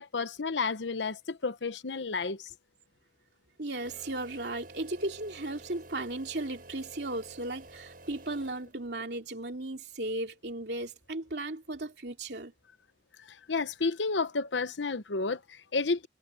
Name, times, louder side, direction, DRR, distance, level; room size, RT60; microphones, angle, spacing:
voice 1, 0.0-2.5 13.3-16.1, left 4 dB, 80° left, 1.0 m, -31 dB
voice 2, 3.6-12.5, right 2 dB, 65° right, 2.9 m, -36 dB
sound 1, 3.8-9.0, right 2 dB, 50° right, 7.6 m, -51 dB
head